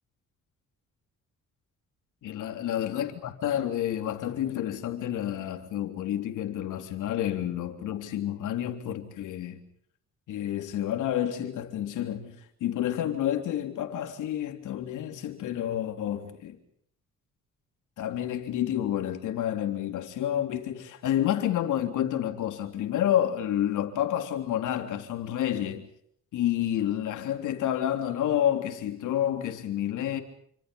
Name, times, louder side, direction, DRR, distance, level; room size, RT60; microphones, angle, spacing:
voice 1, 2.2-9.6 10.3-16.6 18.0-25.8 26.3-30.2, left 11 dB, 80° left, 3.5 m, -29 dB
28.5 x 26.0 x 5.5 m
cardioid pair, 90°, 30 cm